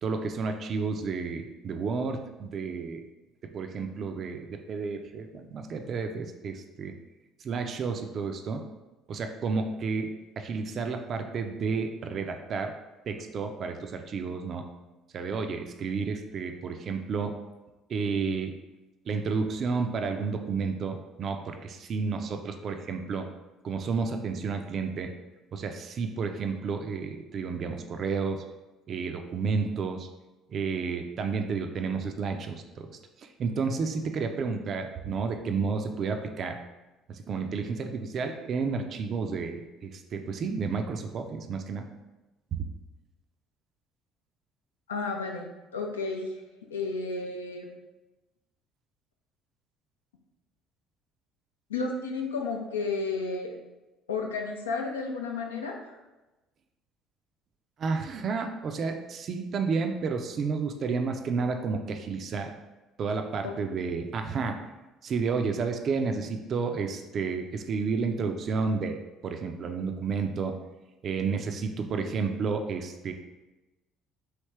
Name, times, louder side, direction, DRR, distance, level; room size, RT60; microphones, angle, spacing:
voice 1, 0.0-3.0 3.5-6.9 7.4-8.6 9.1-12.7 13.1-14.7 15.1-17.3 17.9-18.5 19.1-23.3 23.6-25.1 25.5-28.4 28.9-30.1 30.5-36.6 37.1-41.9 42.5-42.7 57.8-62.5 63.0-64.6 65.0-70.5 71.0-73.1, right 5 dB, 50° right, 5 dB, 0.3 m, -31 dB
voice 2, 44.9-46.3 46.7-47.7 51.7-53.5 54.1-56.0 63.4-63.5, left 4 dB, 90° left, 1 dB, 0.4 m, -32 dB
3.2 x 2.7 x 3.2 m, 1.1 s
hypercardioid pair, 60°, 0 cm